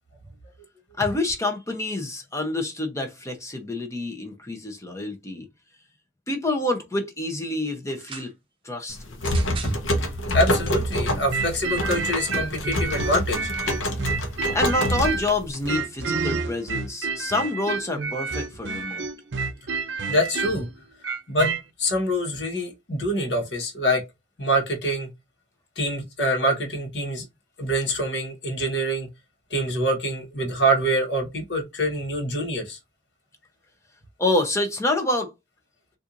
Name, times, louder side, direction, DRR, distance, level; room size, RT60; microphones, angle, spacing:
voice 1, 1.0-5.5 6.3-8.3 8.6-9.0 14.5-19.0 34.2-35.3, left 2 dB, 15° left, 0.7 m, -27 dB
sound 1, 7.9-8.3 9.2-9.8 10.7-10.8, right 5 dB, 25° right, 0.7 m, -39 dB
sound 2, 8.9-15.7, equal, 75° left, 0.8 m, -26 dB
voice 2, 10.3-13.5 14.1-14.2 20.1-20.7 21.3-21.5 21.8-24.0 24.4-25.1 25.8-27.2 27.6-29.1 29.5-32.8, equal, 55° left, 1.2 m, -25 dB
sound 3, 11.3-15.4 15.7-21.6, right 4 dB, 65° right, 0.6 m, -29 dB
4.3 x 2.5 x 2.5 m
head